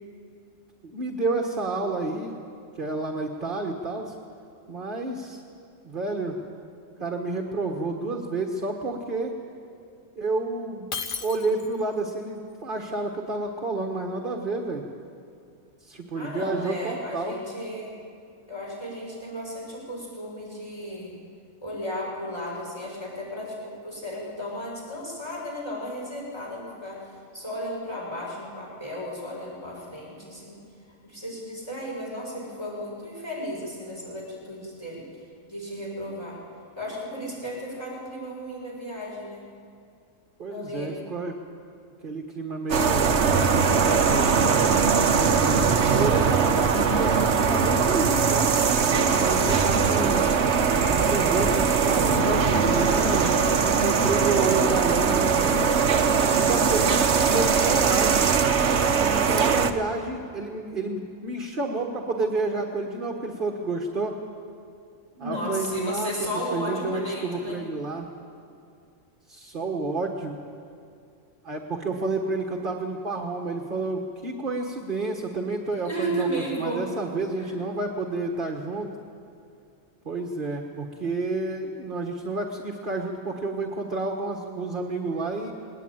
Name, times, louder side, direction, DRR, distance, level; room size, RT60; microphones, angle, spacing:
voice 1, 0.8-2.3 2.8-4.1 4.7-5.4 5.8-6.4 7.0-9.3 10.2-10.9 11.2-14.8 15.8-17.4 40.4-41.4 42.0-43.2 43.8-48.5 49.0-50.3 50.9-55.7 56.3-58.3 58.9-64.2 65.2-66.1 66.5-68.1 69.3-70.4 71.4-78.9 80.0-85.5, right 3 dB, 40° right, 2 dB, 1.7 m, -30 dB
Shatter, 10.9-11.9, left 5 dB, 45° left, 1.1 m, -34 dB
voice 2, 16.1-18.0 18.5-21.2 21.6-30.6 31.0-35.0 35.5-36.4 36.8-39.4 40.5-41.0 49.3-49.8 52.3-52.6 65.1-67.6 75.8-76.8 77.4-77.5, equal, 20° left, -5 dB, 6.7 m, -34 dB
sound 1, 42.7-59.7, right 6 dB, 60° right, 1.3 m, -21 dB
21.0 x 18.5 x 9.2 m, 2.4 s
omnidirectional pair, 1.4 m